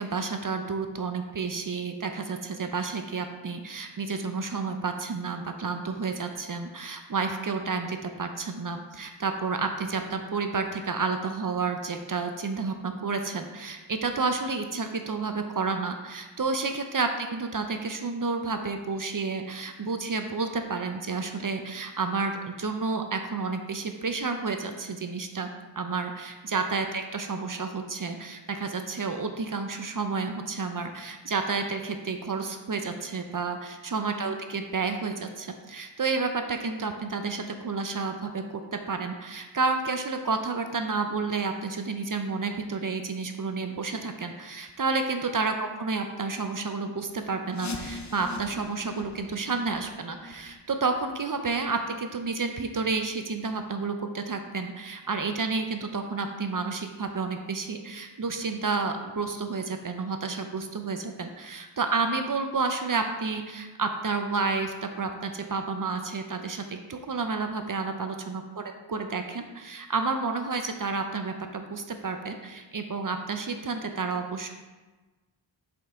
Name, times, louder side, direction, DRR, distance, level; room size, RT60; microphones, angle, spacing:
voice 1, 0.0-25.5 25.8-68.6 68.9-74.5, right 4 dB, 45° right, 6 dB, 0.6 m, -30 dB
sound 1, 47.5-53.1 53.4-53.5 54.1-54.2 54.8-54.9 55.4-55.5, left 2 dB, 35° left, 0.7 m, -43 dB
5.5 x 5.2 x 3.7 m, 1.2 s
wide cardioid pair, 60°, 47 cm